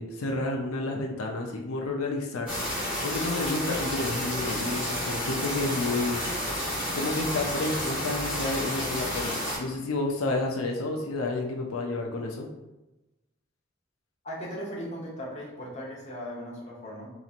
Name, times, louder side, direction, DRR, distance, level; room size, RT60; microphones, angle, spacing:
voice 1, 0.0-2.7 3.0-6.2 6.9-12.5, left 2 dB, 90° left, 1 dB, 0.5 m, -30 dB
sound 1, 2.5-9.6, equal, 5° right, 1.3 m, -31 dB
voice 2, 14.2-17.1, equal, 30° left, -5 dB, 0.9 m, -38 dB
4.0 x 3.0 x 2.4 m, 1.0 s
head